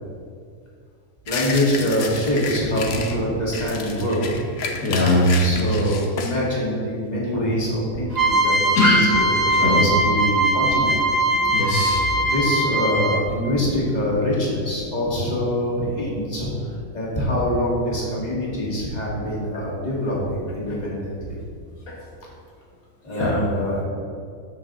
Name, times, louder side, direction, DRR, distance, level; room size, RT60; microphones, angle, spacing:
sound 1, 1.3-3.2 3.5-6.4, left 5 dB, 50° left, 1.0 m, -31 dB
voice 1, 1.3-4.5 5.4-8.5 8.8-11.0 12.3-21.4 23.0-23.8, left 1 dB, 30° left, -6 dB, 2.5 m, -24 dB
voice 2, 4.8-5.4 8.8-9.1 9.6-9.8 11.3-12.1 21.9-22.0 23.1-23.4, left 1 dB, 75° left, -3 dB, 1.9 m, -20 dB
sound 2, 8.1-13.4, right 1 dB, 30° right, 1.1 m, -21 dB
13.5 x 6.1 x 3.9 m, 2.2 s
omnidirectional pair, 1.5 m